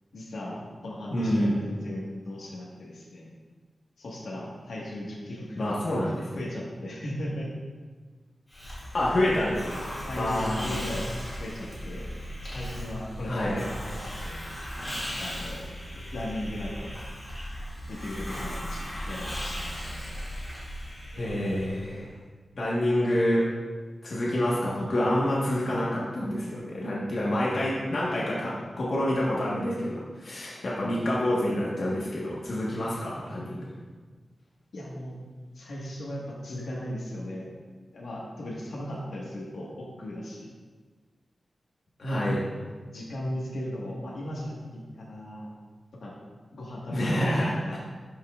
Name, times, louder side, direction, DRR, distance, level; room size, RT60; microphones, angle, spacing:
voice 1, 0.1-3.3 4.0-5.7 6.4-7.5 10.1-11.1 11.4-12.1 12.4-14.4 15.2-15.6 15.9-16.9 17.9-20.0 34.7-35.2 35.5-37.5 37.9-40.5 42.8-45.5 46.0-46.1 46.5-47.8, left 1 dB, 75° left, -4 dB, 1.5 m, -37 dB
voice 2, 1.1-1.5 5.6-6.3 8.9-9.6 10.2-10.8 13.3-13.5 21.1-22.1 22.5-23.5 24.0-33.6 42.0-42.5 46.9-47.8, left 1 dB, 55° left, -6 dB, 1.3 m, -27 dB
Hiss, 8.5-22.0, equal, 15° left, 2.1 m, -37 dB
11.5 x 5.5 x 2.4 m, 1.4 s
wide cardioid pair, 180°, 0 cm